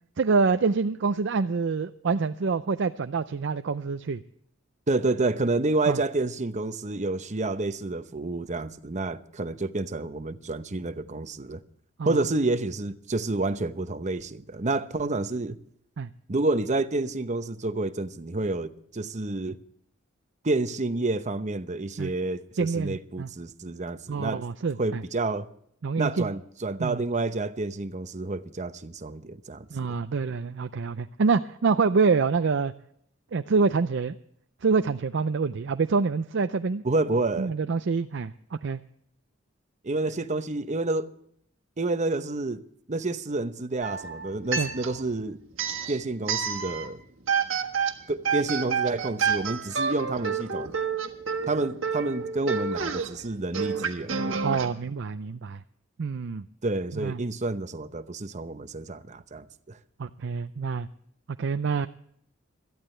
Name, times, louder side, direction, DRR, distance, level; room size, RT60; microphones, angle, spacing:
voice 1, 0.2-4.2 5.9-6.0 12.0-12.2 16.0-16.1 22.0-22.1 22.6-23.3 24.1-25.0 25.8-26.3 26.8-27.0 29.7-32.7 33.3-34.1 34.6-36.8 37.4-38.8 44.6-44.7 54.4-55.6 56.0-56.4 56.9-57.2 60.0-60.9 61.4-61.9, right 4 dB, 65° right, 0.5 m, -26 dB
voice 2, 4.9-11.6 12.0-15.6 16.3-19.6 20.4-24.4 24.8-25.5 26.0-29.7 36.8-37.5 39.8-41.1 41.8-42.6 42.9-45.4 45.9-47.0 48.1-50.7 51.5-54.4 56.6-59.8, right 2 dB, 40° right, 0.8 m, -29 dB
sound 1, 43.8-45.1 45.5-46.9 47.3-54.7, right 6 dB, 85° right, 1.6 m, -29 dB
21.5 x 13.5 x 3.3 m
head